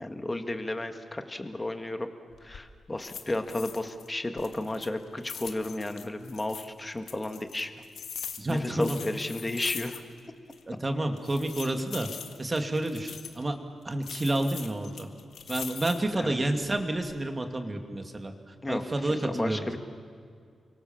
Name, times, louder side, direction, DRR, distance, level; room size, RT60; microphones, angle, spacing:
voice 1, 0.0-2.1 2.4-7.7 8.5-10.0 16.1-16.4 18.6-19.8, left 2 dB, 15° left, 7 dB, 1.8 m, -33 dB
sound 1, 2.3-2.6 3.0-4.1 4.4-6.7 7.1-10.3 10.5-10.6 11.2-13.4 14.0-16.1 16.6-17.2, left 7 dB, 85° left, 1.8 m, -42 dB
voice 2, 8.4-9.0 10.7-12.1 12.4-13.6 13.8-15.1 15.5-19.8, right 1 dB, 20° right, 5 dB, 2.3 m, -30 dB
29.5 x 24.5 x 7.3 m, 2.2 s
wide cardioid pair, 155°, 0 cm